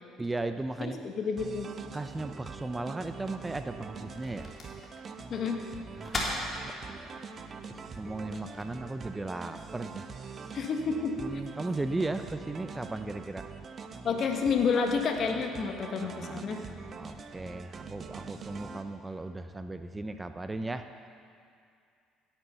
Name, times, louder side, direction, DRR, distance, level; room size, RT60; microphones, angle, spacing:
voice 1, 0.2-1.0 1.9-4.5 6.0-7.2 7.7-10.6 11.2-13.5 16.0-16.6 17.0-20.8, right 2 dB, 15° right, 9 dB, 0.7 m, -36 dB
voice 2, 0.8-1.7 5.3-5.6 10.5-11.1 14.0-16.6, left 5 dB, 50° left, 4 dB, 1.6 m, -29 dB
sound 1, 1.4-18.8, right 5 dB, 40° right, 0.9 m, -44 dB
sound 2, 2.6-8.6, left 1 dB, 35° left, 3.2 m, -41 dB
16.5 x 9.1 x 5.7 m, 2.4 s
hypercardioid pair, 60°, 0 cm